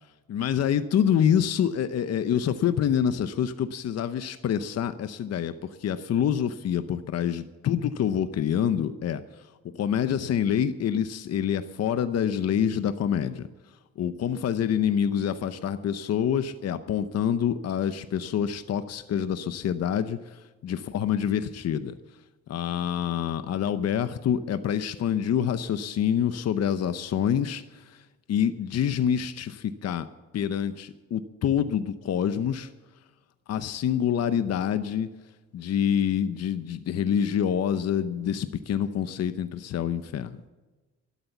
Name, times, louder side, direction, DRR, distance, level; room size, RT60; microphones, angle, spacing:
voice 1, 0.3-9.2 9.7-13.5 14.0-21.9 22.5-28.0 28.3-30.1 30.3-32.7 33.5-35.1 35.5-40.4, left 9 dB, 55° left, 11 dB, 0.8 m, -26 dB
12.5 x 12.0 x 7.1 m, 1.2 s
cardioid pair, 90°, 30 cm